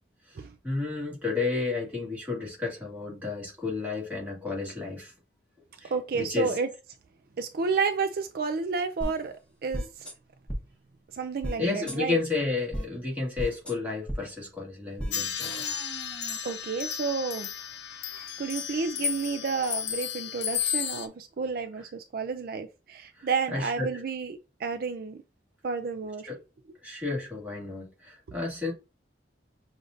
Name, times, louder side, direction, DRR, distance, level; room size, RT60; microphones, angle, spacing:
voice 1, 0.3-5.1 5.8-6.6 11.6-15.5 18.7-18.8 23.1-24.0 26.3-26.4 26.8-28.7, left 3 dB, 10° right, 1.9 m, -32 dB
voice 2, 5.9-6.7 7.4-10.1 11.1-12.2 16.4-17.5 17.9-25.2 25.6-26.3, right 5 dB, 55° right, 0.4 m, -31 dB
sound 1, 9.0-9.1 9.7-10.1 10.5-10.6 11.4-11.6 11.9-12.0 12.7-12.8 13.4-13.7 14.1-14.2 15.0-15.1 15.4-16.4, equal, 5° left, 1.2 m, -34 dB
sound 2, 15.1-21.1, left 9 dB, 80° left, 0.5 m, -33 dB
6.4 x 2.6 x 2.5 m
head